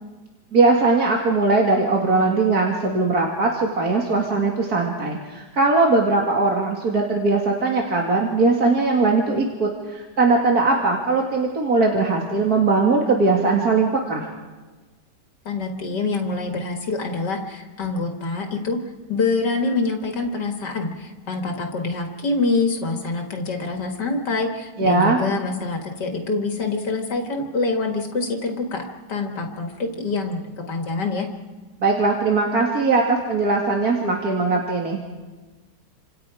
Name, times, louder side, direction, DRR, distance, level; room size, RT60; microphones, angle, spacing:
voice 1, 0.5-14.3 24.8-25.2 31.8-35.0, right 3 dB, 60° right, -1 dB, 2.7 m, -20 dB
voice 2, 15.5-18.8 19.1-31.3, left 3 dB, 85° left, 2 dB, 2.5 m, -25 dB
29.5 x 26.5 x 5.0 m, 1.3 s
omnidirectional pair, 1.8 m